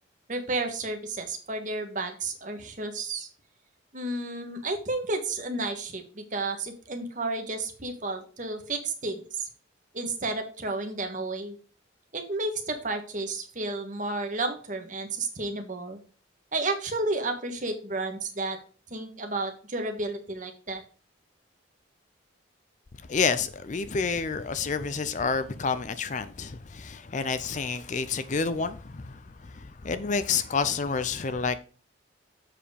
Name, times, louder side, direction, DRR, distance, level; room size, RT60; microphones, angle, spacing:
voice 1, 0.3-3.3 3.9-9.5 9.9-11.6 12.1-16.0 16.5-18.6 18.9-20.8, right 2 dB, 40° right, 1.4 m, -32 dB
voice 2, 23.0-31.6, left 5 dB, 40° left, 0.5 m, -29 dB
7.6 x 4.9 x 5.0 m
head